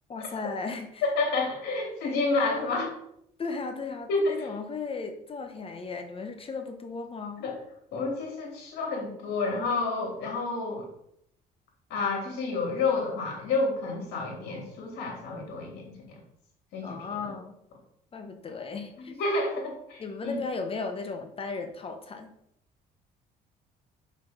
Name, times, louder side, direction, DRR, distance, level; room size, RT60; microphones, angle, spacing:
voice 1, 0.1-1.0 3.4-7.4 16.8-17.5 18.1-19.2 20.0-22.3, left 4 dB, 35° left, 6 dB, 1.0 m, -36 dB
voice 2, 1.0-2.9 4.1-4.4 7.4-7.5 7.9-10.9 11.9-16.2 16.7-17.3 19.0-20.3, left 3 dB, 80° left, 0 dB, 3.0 m, -29 dB
5.6 x 5.4 x 5.4 m, 0.74 s
cardioid pair, 110°, 17 cm